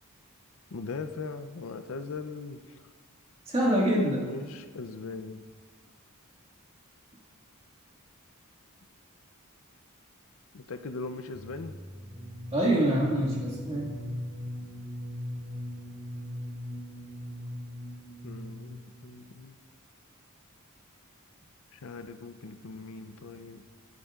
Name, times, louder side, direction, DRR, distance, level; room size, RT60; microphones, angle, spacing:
voice 1, 0.7-2.6 4.1-5.4 10.5-11.7 18.2-19.6 21.7-23.6, left 4 dB, 65° left, 10 dB, 0.6 m, -40 dB
voice 2, 3.5-4.3 12.5-14.0, right 1 dB, 25° right, -4 dB, 1.9 m, -25 dB
sound 1, 11.3-19.0, left 1 dB, 20° left, 1.9 m, -39 dB
12.5 x 10.5 x 2.5 m, 1.5 s
head